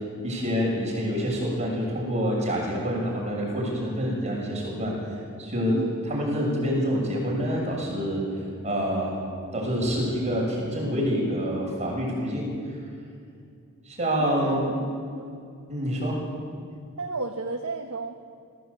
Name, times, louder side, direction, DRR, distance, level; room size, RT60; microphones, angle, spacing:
voice 1, 0.2-5.0 5.4-8.2 8.6-9.2 9.5-12.5 13.9-14.6 15.7-16.2, equal, 30° right, -2 dB, 6.8 m, -27 dB
voice 2, 5.7-6.1 14.2-15.4 17.0-18.2, right 2 dB, 80° right, 3 dB, 1.4 m, -34 dB
23.0 x 15.5 x 8.3 m, 2.4 s
head